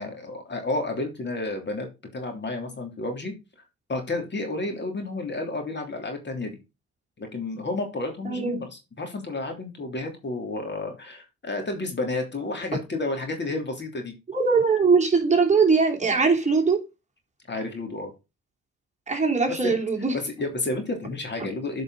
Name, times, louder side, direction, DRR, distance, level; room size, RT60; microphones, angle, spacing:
voice 1, 0.0-3.3 3.9-6.6 7.2-14.1 17.5-18.1 19.5-19.7 20.1-21.8, left 2 dB, 35° left, 3.1 m, -31 dB
voice 2, 8.2-8.6 14.3-16.8 19.1-20.1, right 4 dB, 25° right, 3.0 m, -21 dB
9.3 x 5.4 x 4.0 m
cardioid pair, 90°, 30 cm